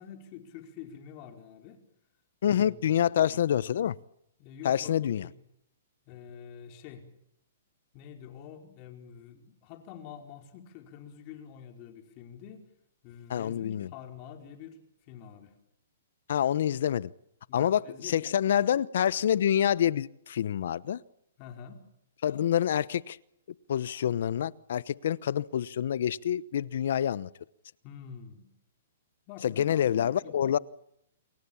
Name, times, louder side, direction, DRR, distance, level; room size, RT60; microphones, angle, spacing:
voice 1, 0.0-1.8 2.4-3.1 4.4-5.3 6.1-7.1 7.9-12.7 13.0-14.8 15.1-15.5 17.5-18.2 21.4-21.8 27.8-28.5 29.3-30.6, left 8 dB, 35° left, 5 dB, 4.9 m, -47 dB
voice 2, 2.4-4.0 4.6-5.3 13.3-13.9 16.3-17.1 17.5-21.0 22.2-23.2 23.7-27.3 29.4-30.6, left 10 dB, 65° left, 20 dB, 0.9 m, -27 dB
28.5 x 23.5 x 7.3 m, 0.77 s
hypercardioid pair, 150°, 0 cm